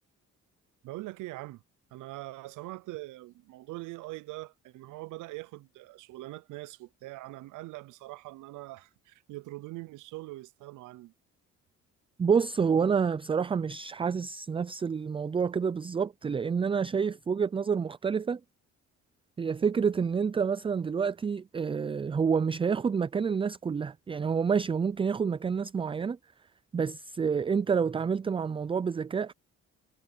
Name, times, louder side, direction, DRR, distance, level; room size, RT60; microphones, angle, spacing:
voice 1, 0.8-1.6 1.9-11.1, right 19 dB, 90° right, 0.6 m, -42 dB
voice 2, 12.2-18.4 19.4-26.2 26.7-29.3, right 6 dB, 20° right, 0.3 m, -28 dB
cardioid pair, 90°, 30 cm